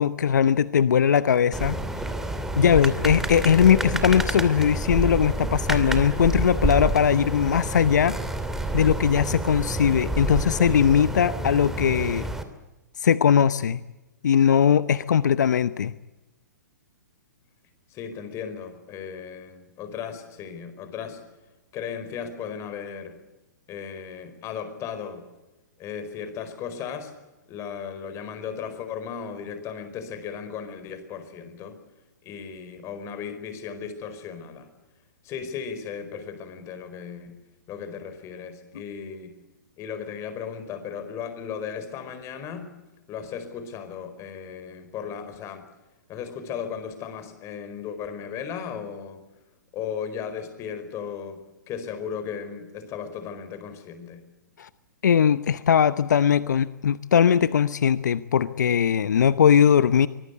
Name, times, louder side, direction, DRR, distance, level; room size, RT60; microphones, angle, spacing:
voice 1, 0.0-1.8 2.6-8.2 8.7-12.3 13.0-13.8 14.2-15.9 54.6-54.7 55.0-60.1, left 8 dB, 70° left, 15 dB, 0.8 m, -20 dB
sound 1, 1.5-12.4, right 2 dB, 5° right, 2.6 m, -28 dB
voice 2, 17.9-21.2 21.7-23.2 23.7-25.3 25.8-27.1 27.5-31.8 32.2-34.7 35.2-37.4 37.7-39.3 39.8-42.7 43.1-45.7 46.1-49.2 49.7-54.3, left 7 dB, 30° left, 10 dB, 4.8 m, -36 dB
25.0 x 20.5 x 8.1 m, 1.1 s
hypercardioid pair, 120°, 10 cm